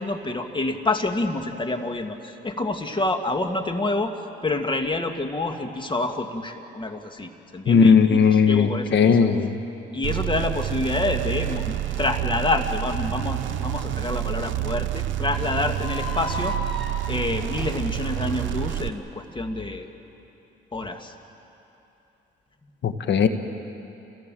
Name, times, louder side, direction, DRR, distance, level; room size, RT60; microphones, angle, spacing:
voice 1, 0.0-4.1 4.4-9.2 9.9-16.5 17.1-19.9 20.7-21.1, left 2 dB, 25° left, 5 dB, 1.9 m, -27 dB
voice 2, 7.7-9.5 22.8-23.3, left 6 dB, 65° left, 8 dB, 1.5 m, -17 dB
sound 1, 10.0-18.9, right 13 dB, 75° right, 0.8 m, -28 dB
sound 2, 15.8-19.0, equal, ahead, 4.1 m, -35 dB
28.0 x 17.0 x 7.6 m, 2.9 s
cardioid pair, 90°, 20 cm